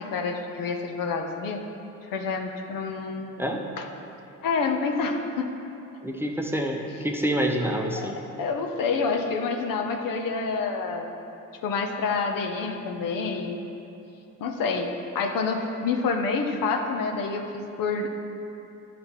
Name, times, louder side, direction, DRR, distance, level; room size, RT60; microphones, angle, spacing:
voice 1, 0.0-1.6 2.1-3.5 3.8-3.9 4.4-5.5 7.9-8.1 8.4-11.1 11.6-13.6 14.4-18.1, left 4 dB, 75° left, 4 dB, 0.8 m, -28 dB
voice 2, 6.0-8.2, equal, 5° right, 1 dB, 0.7 m, -27 dB
10.5 x 4.2 x 4.4 m, 2.8 s
cardioid pair, 80°, 34 cm